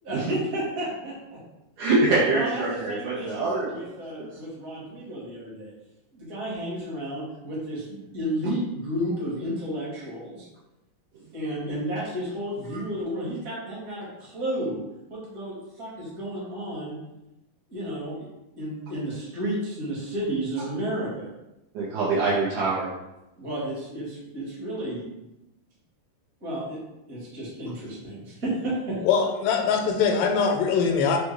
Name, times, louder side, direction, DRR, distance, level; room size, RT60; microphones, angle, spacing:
voice 1, 0.0-1.4 2.3-5.7 6.1-10.5 11.3-14.8 15.1-16.9 17.7-18.3 18.5-21.3 23.4-25.1 26.4-26.8 27.1-29.0, right 1 dB, 45° right, -7 dB, 1.2 m, -32 dB
voice 2, 1.8-3.9 21.8-22.9, right 3 dB, 75° right, -7 dB, 1.9 m, -24 dB
voice 3, 29.0-31.2, left 6 dB, 85° left, 3 dB, 2.3 m, -22 dB
6.2 x 2.2 x 3.3 m, 0.94 s
omnidirectional pair, 4.0 m